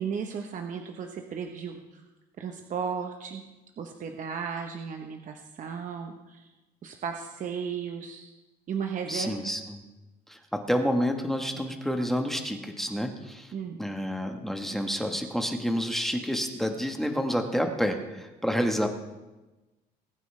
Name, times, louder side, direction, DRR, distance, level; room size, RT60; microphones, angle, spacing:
voice 1, 0.0-2.0 2.4-3.4 3.8-6.5 6.8-8.3 8.7-9.3 13.5-13.8, right 6 dB, 50° right, 4 dB, 1.0 m, -35 dB
voice 2, 9.1-9.8 10.3-18.9, equal, ahead, 4 dB, 1.3 m, -29 dB
21.5 x 9.2 x 3.3 m, 1.1 s
cardioid pair, 110°, 17 cm